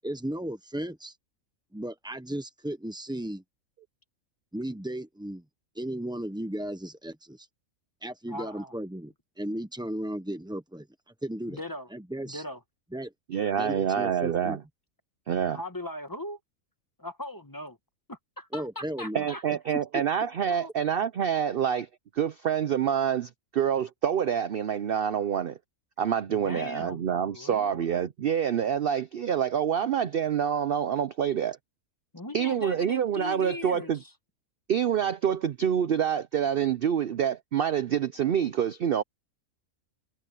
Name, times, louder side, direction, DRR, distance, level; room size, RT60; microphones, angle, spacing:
voice 1, 0.0-1.2 1.7-3.4 4.5-5.4 5.8-7.5 8.0-10.8 11.2-11.6 11.9-12.4 12.9-13.1 13.6-14.6 18.5-19.3 19.9-20.0, right 1 dB, 5° right, 0.3 m, -35 dB
voice 2, 8.3-8.7 11.5-11.9 12.2-12.6 15.5-16.4 17.0-17.8 18.1-19.4 19.7-19.8 20.5-20.7 26.3-27.8 32.1-34.0, left 1 dB, 15° left, 1.4 m, -39 dB
voice 3, 13.3-14.6 15.3-15.6 19.1-21.9 22.1-25.6 26.0-31.6 32.3-34.0 34.7-39.0, right 8 dB, 60° right, 0.6 m, -27 dB
omnidirectional pair, 1.5 m